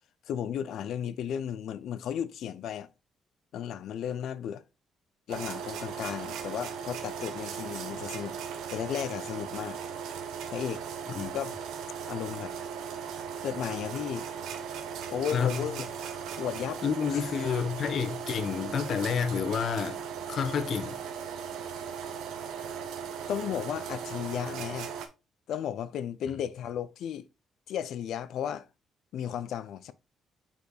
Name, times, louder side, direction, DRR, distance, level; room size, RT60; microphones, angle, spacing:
voice 1, 0.3-2.9 3.5-4.6 5.3-8.4 8.7-9.8 10.5-10.9 11.3-11.6 12.1-12.5 13.4-14.3 15.1-15.9 16.4-16.8 17.1-17.2 23.3-24.9 25.5-27.3 27.7-28.7 29.1-29.9, left 9 dB, 75° left, 0.5 m, -34 dB
sound 1, 5.3-25.1, right 7 dB, 85° right, 1.0 m, -38 dB
voice 2, 15.3-15.6 16.8-20.0 20.3-21.0, left 6 dB, 60° left, 1.0 m, -29 dB
5.6 x 4.3 x 4.0 m
cardioid pair, 90°, 0 cm